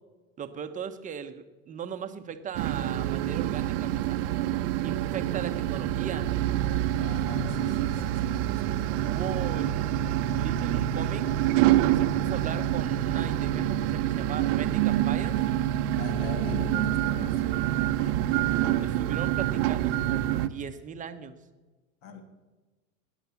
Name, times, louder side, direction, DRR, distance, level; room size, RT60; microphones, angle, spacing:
voice 1, 0.4-4.2 4.8-6.3 9.0-11.3 11.9-15.4 18.0-18.1 18.8-21.4, right 8 dB, 20° right, 8 dB, 0.9 m, -38 dB
sound 1, 2.5-20.5, right 12 dB, 45° right, 0.9 m, -26 dB
voice 2, 7.0-9.3 16.0-17.7 22.0-22.2, left 5 dB, 55° left, 7 dB, 2.6 m, -41 dB
17.5 x 10.0 x 7.1 m, 1.2 s
supercardioid pair, 140°, 43 cm